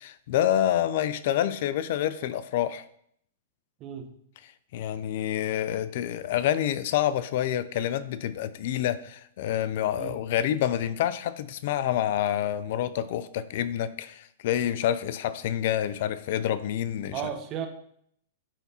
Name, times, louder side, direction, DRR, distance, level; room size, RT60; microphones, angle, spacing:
voice 1, 0.0-2.8 4.7-17.2, left 11 dB, 55° left, 14 dB, 0.4 m, -27 dB
voice 2, 17.1-17.7, right 9 dB, 35° right, 6 dB, 0.9 m, -34 dB
10.0 x 3.5 x 2.8 m, 0.67 s
hypercardioid pair, 115°, 0 cm